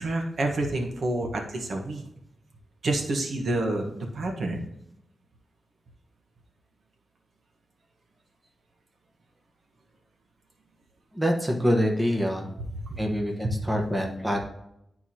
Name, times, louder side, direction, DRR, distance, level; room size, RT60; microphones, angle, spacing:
voice 1, 0.0-2.0 2.8-4.7 12.9-13.0, right 2 dB, 65° right, 2 dB, 1.3 m, -28 dB
voice 2, 11.1-12.5 13.0-14.4, equal, 10° right, 0 dB, 1.2 m, -25 dB
11.0 x 4.7 x 2.9 m, 0.80 s
wide cardioid pair, 140°, 0 cm